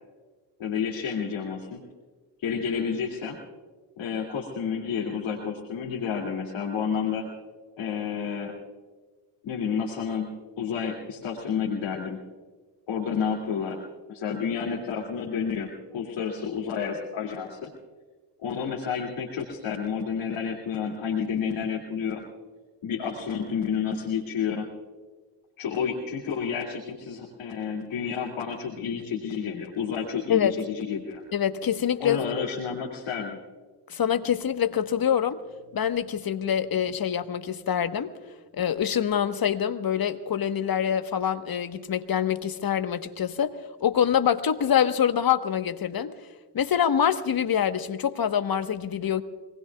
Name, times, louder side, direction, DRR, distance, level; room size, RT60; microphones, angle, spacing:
voice 1, 0.6-1.8 2.4-3.4 4.0-7.3 7.8-8.5 9.4-10.3 10.6-12.2 12.9-13.8 14.1-17.7 18.4-22.2 22.8-24.7 25.6-31.2 32.0-33.4, left 6 dB, 65° left, 2.6 m, -30 dB
voice 2, 31.3-32.2 33.9-35.4 35.7-38.2 38.5-43.5 43.8-46.1 46.5-49.2, left 9 dB, 45° left, 1.3 m, -25 dB
25.5 x 20.0 x 2.4 m
supercardioid pair, 50°, 50 cm